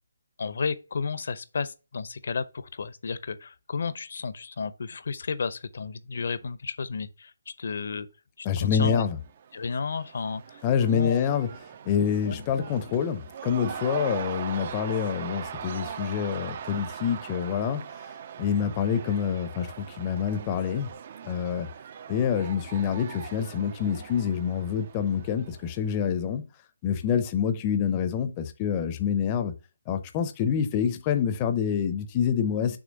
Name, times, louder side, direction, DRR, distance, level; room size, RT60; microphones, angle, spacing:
voice 1, 0.4-8.1 8.4-9.1 9.5-11.2 12.3-12.4, left 5 dB, 60° left, 0.7 m, -32 dB
voice 2, 8.4-9.2 10.6-11.5 11.9-17.8 18.4-20.9 21.2-21.7 22.1-26.4 26.8-29.5 29.9-32.8, left 8 dB, 20° left, 0.6 m, -27 dB
Cheering / Crowd, 9.1-26.0, right 8 dB, 35° right, 0.4 m, -41 dB
6.3 x 3.1 x 5.2 m
hypercardioid pair, 165°, 0 cm